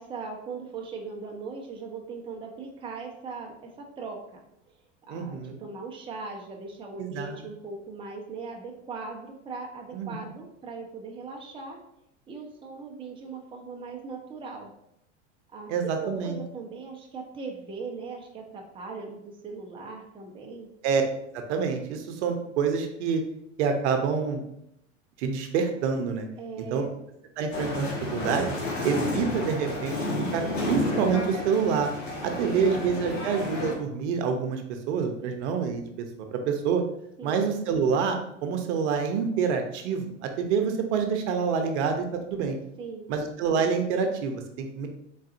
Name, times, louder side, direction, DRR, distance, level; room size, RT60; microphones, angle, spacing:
voice 1, 0.0-4.7 5.1-11.8 12.3-14.7 15.5-20.7 26.4-26.9 32.3-32.8 37.2-37.4 42.8-43.1, right 4 dB, 15° right, 1 dB, 0.6 m, -39 dB
voice 2, 5.1-5.6 7.0-7.5 9.9-10.2 15.7-16.4 20.8-21.0 21.3-23.2 23.6-24.4 25.2-26.3 26.6-26.8 27.4-28.5 28.8-30.0 30.3-31.9 32.2-34.6 34.9-36.8 37.2-42.6 43.1-44.9, right 6 dB, 65° right, 5 dB, 0.8 m, -27 dB
sound 1, 27.5-33.7, left 1 dB, 85° left, 1.1 m, -31 dB
3.9 x 3.7 x 2.6 m, 0.78 s
hypercardioid pair, 105°, 37 cm